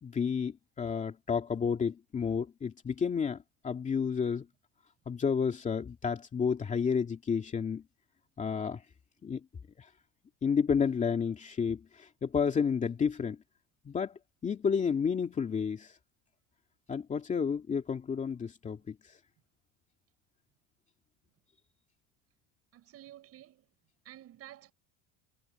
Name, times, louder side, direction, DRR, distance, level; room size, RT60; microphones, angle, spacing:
voice 1, 0.0-4.5 5.1-7.8 8.4-8.8 9.2-9.4 9.8-9.9 10.4-13.4 13.8-15.9 16.9-19.0, left 6 dB, 20° left, 2.5 m, -31 dB
voice 2, 22.7-23.7 24.0-24.7, right 13 dB, 35° right, 6.4 m, -51 dB
cardioid pair, 175°, 39 cm